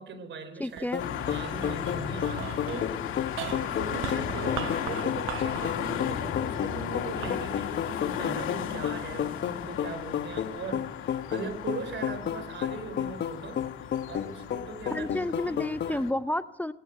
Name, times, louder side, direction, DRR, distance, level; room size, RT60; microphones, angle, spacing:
voice 1, 0.0-3.0 3.4-13.7 14.1-15.1 15.4-15.6 15.8-16.0, right 4 dB, 65° right, 12 dB, 4.0 m, -40 dB
voice 2, 0.6-1.0 14.9-16.7, left 1 dB, 10° left, 12 dB, 0.7 m, -30 dB
sound 1, 0.7-9.2 9.7-10.5, right 11 dB, 85° right, 1.1 m, -41 dB
sound 2, 0.9-16.0, left 9 dB, 65° left, 1.2 m, -33 dB
sound 3, 1.0-16.1, left 9 dB, 85° left, 2.2 m, -35 dB
19.5 x 18.0 x 8.9 m, 0.89 s
cardioid pair, 90°, 20 cm